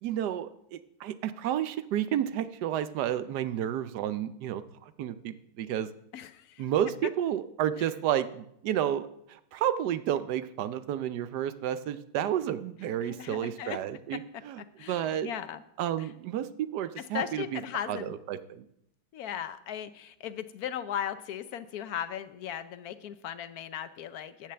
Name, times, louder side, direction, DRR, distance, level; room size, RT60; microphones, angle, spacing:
voice 1, 0.0-4.6 5.0-5.9 6.6-14.6 14.9-15.3 15.8-17.6 17.9-18.6, right 10 dB, 70° right, 13 dB, 1.1 m, -31 dB
voice 2, 6.1-6.7 7.8-7.9 12.9-13.8 14.6-15.6 16.0-16.1 17.0-18.1 19.1-24.5, left 9 dB, 70° left, 12 dB, 0.9 m, -37 dB
10.0 x 6.7 x 7.6 m, 0.74 s
omnidirectional pair, 2.0 m